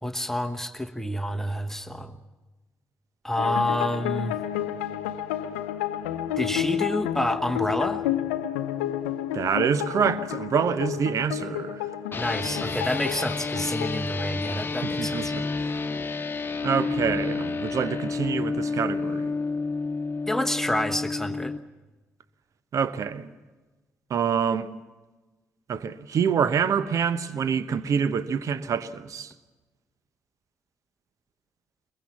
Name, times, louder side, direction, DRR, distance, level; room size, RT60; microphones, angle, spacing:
voice 1, 0.0-2.2 3.2-4.4 6.4-8.0 12.1-15.3 20.3-21.5, left 1 dB, 5° left, 1.1 m, -28 dB
sound 1, 3.4-15.1, left 11 dB, 80° left, 0.7 m, -31 dB
voice 2, 9.3-11.8 14.8-15.4 16.6-19.3 22.7-23.3 24.1-24.7 25.7-29.3, right 7 dB, 55° right, 0.9 m, -26 dB
sound 2, 12.1-21.6, left 4 dB, 30° left, 1.1 m, -30 dB
22.0 x 22.0 x 7.2 m
figure-of-eight pair, 40°, 7 cm